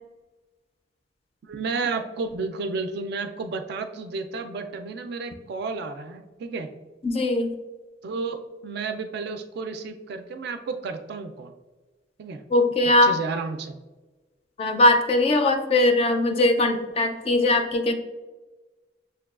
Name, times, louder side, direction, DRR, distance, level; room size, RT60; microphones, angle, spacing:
voice 1, 1.4-6.7 8.0-11.5 12.2-12.4 13.0-13.8, right 4 dB, 60° right, 7 dB, 0.3 m, -32 dB
voice 2, 7.0-7.5 12.5-13.1 14.6-17.9, left 2 dB, 30° left, 6 dB, 0.3 m, -20 dB
6.5 x 2.2 x 2.3 m, 1.2 s
head